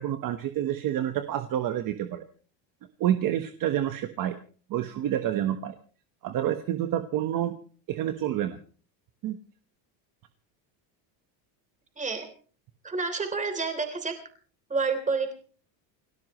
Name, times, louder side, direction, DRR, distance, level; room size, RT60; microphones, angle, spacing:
voice 1, 0.0-2.2 3.0-4.4 4.7-5.7 6.2-7.5 7.9-8.6 9.2-9.4, right 11 dB, 40° right, 7 dB, 1.3 m, -28 dB
voice 2, 12.0-12.3 12.8-14.1 14.7-15.3, right 4 dB, 15° right, 7 dB, 3.4 m, -29 dB
29.5 x 13.0 x 3.1 m, 0.42 s
cardioid pair, 155°, 50 cm